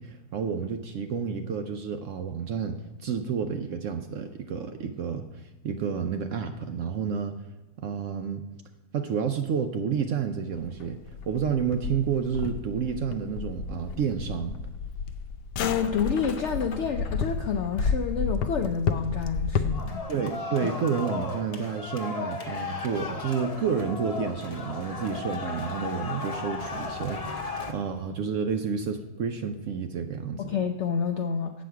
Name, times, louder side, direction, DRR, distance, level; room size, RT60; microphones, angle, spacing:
voice 1, 0.0-7.3 7.8-8.4 8.9-11.0 11.3-14.6 20.1-30.4, right 6 dB, 70° right, 7 dB, 0.8 m, -30 dB
sound 1, 10.5-20.0, left 5 dB, 90° left, 1.2 m, -31 dB
voice 2, 15.6-20.1 30.4-31.6, left 6 dB, 75° left, 5 dB, 0.6 m, -29 dB
sound 2, 19.7-27.7, left 4 dB, 35° left, 0.7 m, -35 dB
8.4 x 7.0 x 4.6 m, 1.1 s
omnidirectional pair, 1.7 m